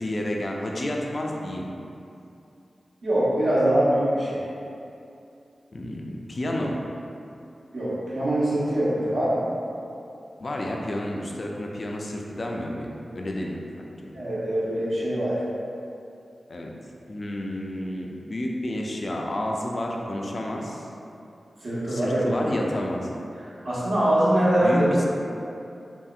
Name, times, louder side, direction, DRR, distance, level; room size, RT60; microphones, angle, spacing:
voice 1, 0.0-1.7 5.7-6.7 10.4-13.9 16.5-16.7 17.1-20.9 21.9-23.1 24.6-25.0, left 1 dB, 55° left, -1 dB, 0.4 m, -30 dB
voice 2, 3.0-4.4 7.7-9.4 14.1-15.3 21.6-22.4 23.6-24.8, right 1 dB, 85° right, -11 dB, 1.0 m, -23 dB
3.1 x 2.7 x 2.4 m, 2.6 s
cardioid pair, 45°, 0 cm